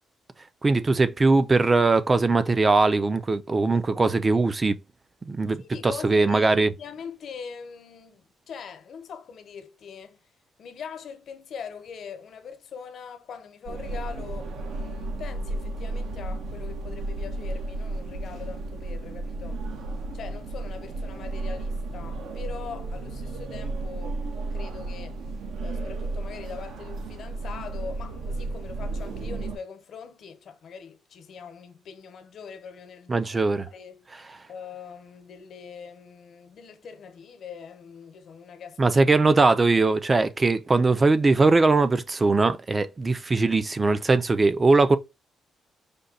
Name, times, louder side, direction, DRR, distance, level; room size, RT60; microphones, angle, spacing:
voice 1, 0.6-4.8 5.3-6.7 33.1-33.7 38.8-45.0, right 3 dB, 25° right, 0.6 m, -21 dB
voice 2, 5.6-10.2 10.6-19.6 20.1-25.2 25.6-33.3 33.7-34.1 34.5-39.0, left 6 dB, 65° left, 1.1 m, -42 dB
sound 1, 13.7-29.6, right 2 dB, 75° right, 1.1 m, -33 dB
5.2 x 2.2 x 4.1 m
cardioid pair, 90°, 0 cm